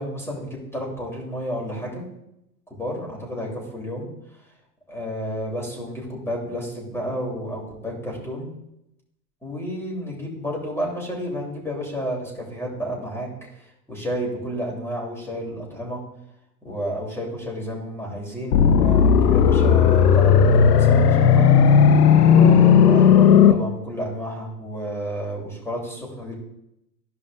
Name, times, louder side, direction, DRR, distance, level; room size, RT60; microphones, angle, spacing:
voice 1, 0.0-2.0 2.7-4.1 4.9-8.5 9.4-13.3 13.5-16.0 16.6-20.3 20.7-22.0 22.2-26.3, equal, 5° left, -3 dB, 3.4 m, -31 dB
sound 1, 18.5-23.5, left 7 dB, 80° left, 0.8 m, -14 dB
14.5 x 5.2 x 2.6 m, 0.83 s
hypercardioid pair, 95°, 47 cm